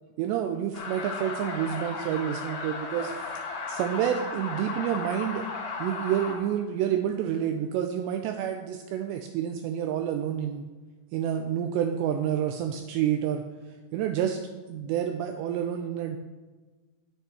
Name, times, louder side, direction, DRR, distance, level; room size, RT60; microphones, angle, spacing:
voice 1, 0.2-3.3 3.7-5.5 5.8-10.7 11.1-13.4 13.9-14.4 14.7-16.2, right 10 dB, 90° right, 6 dB, 2.4 m, -29 dB
sound 1, 0.7-6.3, left 4 dB, 70° left, 1.8 m, -35 dB
9.4 x 9.4 x 4.3 m, 1.3 s
omnidirectional pair, 5.5 m